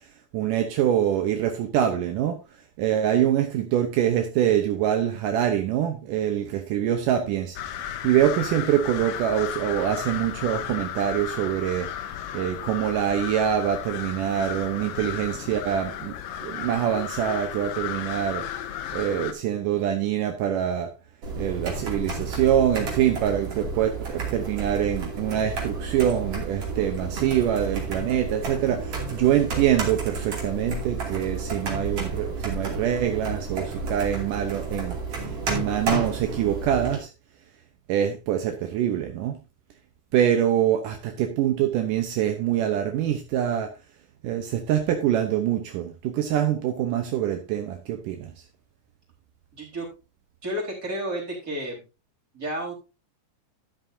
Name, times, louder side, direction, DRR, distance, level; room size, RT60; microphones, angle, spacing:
voice 1, 0.3-2.4 2.8-11.9 12.3-16.1 16.4-18.5 18.9-20.9 21.4-37.1 37.9-39.4 40.1-43.7 44.2-48.3, right 10 dB, 80° right, 1.9 m, -25 dB
sound 1, 7.6-19.3, left 10 dB, 80° left, 2.0 m, -34 dB
sound 2, 21.2-37.0, right 3 dB, 40° right, 3.1 m, -31 dB
voice 2, 49.5-49.9 50.4-51.8 52.3-52.7, right 1 dB, 20° right, 4.0 m, -31 dB
12.5 x 8.7 x 2.7 m
omnidirectional pair, 5.0 m